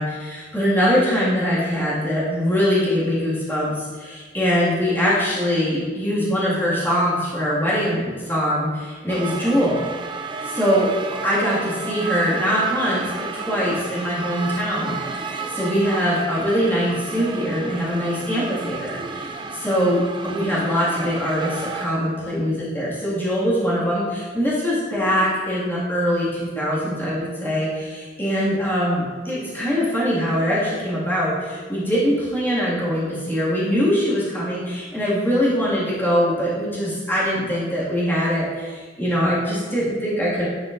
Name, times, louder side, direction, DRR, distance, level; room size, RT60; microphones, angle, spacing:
voice 1, 0.0-9.8 10.4-10.9 11.2-40.5, equal, 10° left, -8 dB, 2.0 m, -22 dB
sound 1, 9.1-21.9, right 4 dB, 25° right, 0.4 m, -32 dB
10.0 x 5.5 x 2.6 m, 1.4 s
head